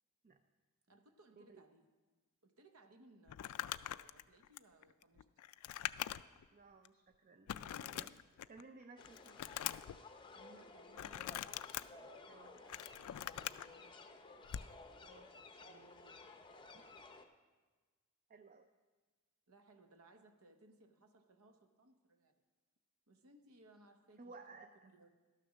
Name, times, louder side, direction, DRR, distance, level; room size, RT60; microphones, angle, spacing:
voice 1, 0.9-1.9 2.4-3.5 3.9-5.3 10.3-11.4 11.7-12.6 12.9-14.0 15.3-16.2 19.5-22.4 23.1-24.4 24.8-25.1, right 2 dB, 75° right, 7 dB, 0.9 m, -65 dB
Crumpling crinkling, 3.3-6.5 6.8-6.9 7.5-8.6 9.0-10.0 10.9-11.8 12.5-13.7 14.5-14.7, left 12 dB, 75° left, 0.3 m, -43 dB
voice 2, 6.5-8.1 8.5-9.4 12.3-12.7 15.0-15.3 16.7-16.8 18.3-18.7 24.2-24.7, right 3 dB, 40° right, 7 dB, 0.4 m, -57 dB
sound 1, 9.0-17.3, left 3 dB, 20° left, 0.6 m, -56 dB
12.5 x 6.6 x 6.2 m, 1.3 s
head